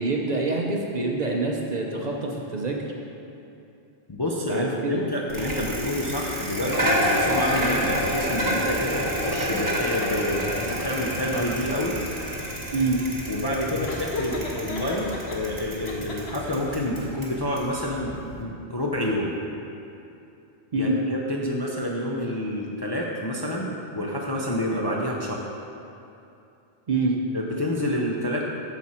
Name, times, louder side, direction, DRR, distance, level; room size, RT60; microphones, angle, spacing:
voice 1, 0.0-2.8 4.5-5.0 12.7-13.0 20.7-21.0 26.9-27.2, right 3 dB, 45° right, -1 dB, 0.7 m, -26 dB
voice 2, 4.1-12.0 13.3-19.3 20.7-25.4 27.3-28.5, left 1 dB, 30° left, -3 dB, 0.5 m, -28 dB
Bicycle, 5.3-18.4, equal, 20° right, 1.3 m, -29 dB
Laughter, 13.9-15.4 15.8-16.7, left 3 dB, 70° left, 1.0 m, -33 dB
8.2 x 6.3 x 4.3 m, 2.7 s
omnidirectional pair, 1.2 m